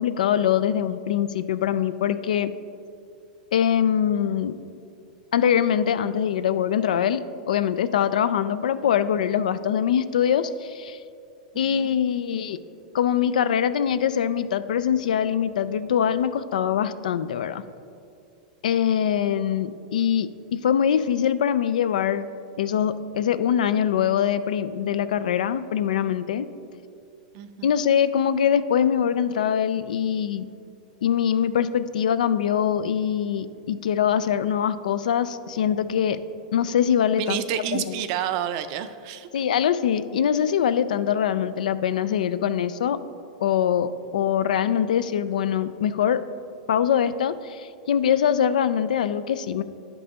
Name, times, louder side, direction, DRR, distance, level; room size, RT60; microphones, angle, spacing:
voice 1, 0.0-2.5 3.5-4.6 5.3-11.0 11.6-12.6 12.9-17.6 18.6-22.3 22.6-26.5 27.6-30.5 31.0-36.2 36.5-37.4 37.7-37.9 39.3-43.0 43.4-46.2 46.7-49.6, left 9 dB, 90° left, 14 dB, 0.3 m, -23 dB
voice 2, 11.5-11.9 27.3-27.7 37.2-39.3, right 9 dB, 50° right, 11 dB, 0.4 m, -30 dB
10.5 x 5.3 x 2.9 m, 2.4 s
supercardioid pair, 145°, 4 cm